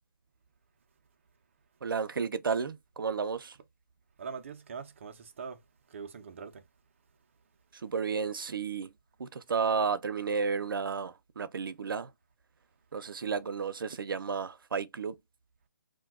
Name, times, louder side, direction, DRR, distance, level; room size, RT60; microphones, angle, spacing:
voice 1, 1.8-3.6 7.7-8.9 9.2-12.1 12.9-15.2, right 5 dB, 90° right, 0.5 m, -32 dB
voice 2, 4.2-5.6 5.9-6.6, right 5 dB, 35° right, 0.5 m, -42 dB
2.6 x 2.2 x 3.4 m
hypercardioid pair, 170°, 11 cm